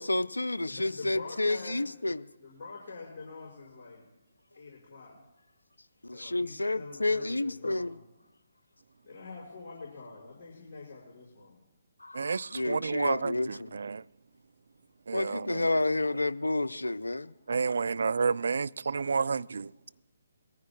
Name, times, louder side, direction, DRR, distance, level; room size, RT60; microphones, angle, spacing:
voice 1, 0.0-2.2 6.0-8.0 12.0-13.8 15.1-17.3, left 2 dB, 80° left, 0.5 m, -30 dB
voice 2, 0.7-2.1 2.4-4.1 4.5-5.1 6.1-8.0 9.0-11.6, left 4 dB, 30° left, 5.5 m, -46 dB
voice 3, 12.1-14.0 15.1-15.6 17.5-19.7, right 5 dB, 60° right, 0.3 m, -30 dB
22.0 x 14.0 x 2.3 m
figure-of-eight pair, 140°, 0 cm